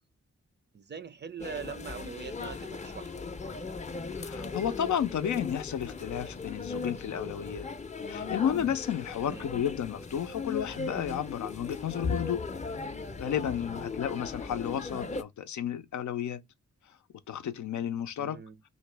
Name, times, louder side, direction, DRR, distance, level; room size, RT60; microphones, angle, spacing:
voice 1, 0.7-3.1 9.2-9.5 13.7-13.9 18.2-18.6, right 6 dB, 40° right, 0.5 m, -42 dB
sound 1, 1.4-15.2, left 4 dB, 25° left, 0.5 m, -38 dB
voice 2, 4.1-7.7 8.1-12.4 13.2-16.4 16.9-17.0 17.3-18.4, left 9 dB, 85° left, 0.5 m, -32 dB
2.9 x 2.8 x 3.2 m
cardioid pair, 60°, 29 cm